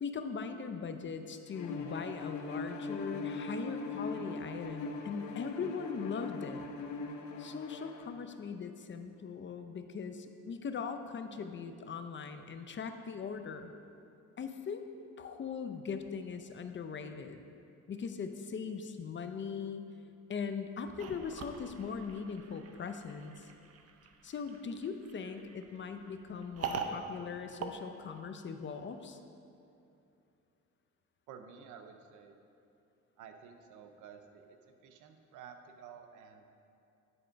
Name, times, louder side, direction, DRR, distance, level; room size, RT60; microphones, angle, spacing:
voice 1, 0.0-6.7 7.4-13.7 14.4-14.8 15.2-17.4 17.9-19.9 20.3-23.5 24.2-29.2, left 6 dB, 40° left, 7 dB, 0.6 m, -40 dB
Bowed string instrument, 1.5-8.1, left 3 dB, 75° left, 0.8 m, -41 dB
sound 1, 21.0-28.7, right 5 dB, 55° right, 0.7 m, -44 dB
voice 2, 31.3-32.4 33.2-36.4, right 7 dB, 90° right, 6 dB, 0.7 m, -52 dB
9.8 x 4.4 x 5.1 m, 2.7 s
cardioid pair, 90°, 30 cm